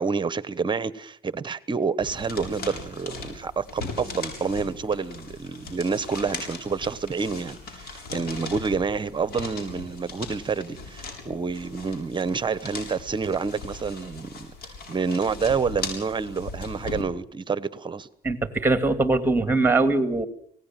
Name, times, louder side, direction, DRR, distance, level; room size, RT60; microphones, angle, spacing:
voice 1, 0.0-14.5 14.9-18.1, right 5 dB, 30° right, 1.2 m, -28 dB
sound 1, 2.0-17.0, left 3 dB, 65° left, 7.7 m, -39 dB
voice 2, 18.2-20.3, right 2 dB, 15° right, 2.7 m, -22 dB
26.0 x 18.5 x 7.6 m
cardioid pair, 110°, 17 cm